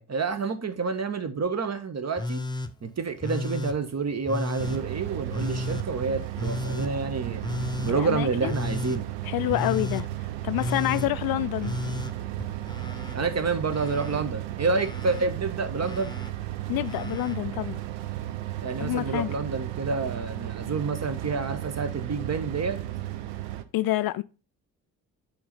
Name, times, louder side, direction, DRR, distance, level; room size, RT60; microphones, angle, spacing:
voice 1, 0.0-2.4 2.8-7.4 7.8-9.1 13.1-16.1 18.6-22.8, right 4 dB, 35° right, 1.4 m, -29 dB
Telephone, 2.2-2.7 3.2-3.8 4.3-4.8 5.3-5.9 6.4-6.9 7.4-8.0 8.5-9.0 9.5-10.1 10.5-11.1 11.6-13.2 13.4-14.2 14.8-15.3 15.8-16.3 16.9-17.4 18.6-18.7, left 2 dB, 10° left, 0.8 m, -33 dB
sound 1, 4.6-23.6, right 14 dB, 70° right, 0.8 m, -34 dB
voice 2, 7.9-8.5 9.2-10.1 10.4-11.7 16.7-17.8 18.8-19.3 23.7-24.2, left 16 dB, 50° left, 0.5 m, -27 dB
8.6 x 3.9 x 4.1 m
figure-of-eight pair, 40°, 46 cm